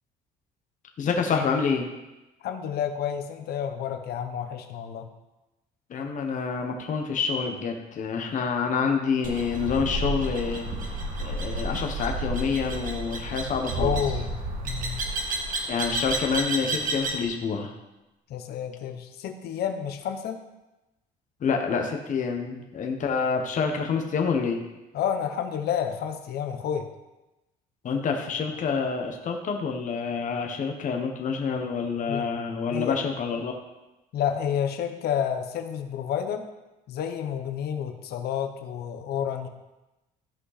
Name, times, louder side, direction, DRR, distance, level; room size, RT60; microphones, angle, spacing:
voice 1, 1.0-1.9 5.9-14.0 15.7-17.7 21.4-24.6 27.8-33.5, left 5 dB, 50° left, 3 dB, 1.3 m, -27 dB
voice 2, 2.4-5.1 13.8-14.4 14.6-15.0 18.3-20.4 24.9-26.9 32.1-32.2 32.7-33.0 34.1-36.4 36.9-39.5, left 8 dB, 70° left, 7 dB, 1.0 m, -30 dB
sound 1, 9.2-17.2, right 2 dB, 50° right, 1.8 m, -31 dB
14.5 x 5.3 x 4.2 m, 1.0 s
cardioid pair, 110°, 17 cm